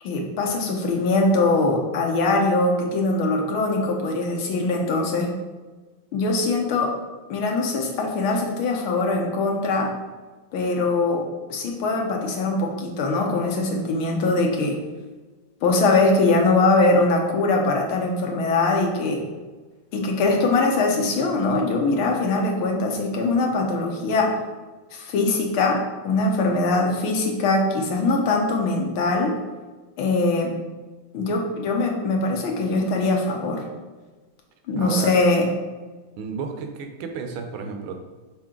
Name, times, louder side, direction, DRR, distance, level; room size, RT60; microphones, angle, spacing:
voice 1, 0.0-5.3 6.1-6.9 7.3-9.9 10.5-14.8 15.6-19.3 19.9-24.4 24.9-29.4 30.0-30.5 31.1-33.6 34.7-35.4, left 3 dB, 75° left, 1 dB, 1.7 m, -22 dB
voice 2, 34.8-35.1 36.2-37.9, right 5 dB, 75° right, 5 dB, 1.4 m, -32 dB
6.1 x 4.4 x 3.7 m, 1.3 s
omnidirectional pair, 2.4 m